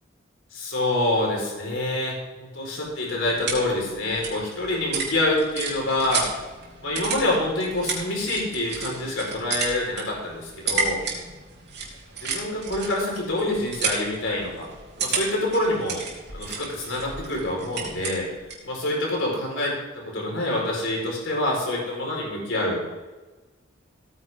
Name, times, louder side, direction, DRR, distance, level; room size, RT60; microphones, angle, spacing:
voice 1, 0.5-6.3 6.8-11.0 12.2-14.7 15.0-16.0 16.3-18.3 18.6-22.8, left 1 dB, 70° left, -2 dB, 4.6 m, -26 dB
sound 1, 2.8-18.7, right 5 dB, 55° right, 3.3 m, -33 dB
16.5 x 9.5 x 3.7 m, 1.2 s
head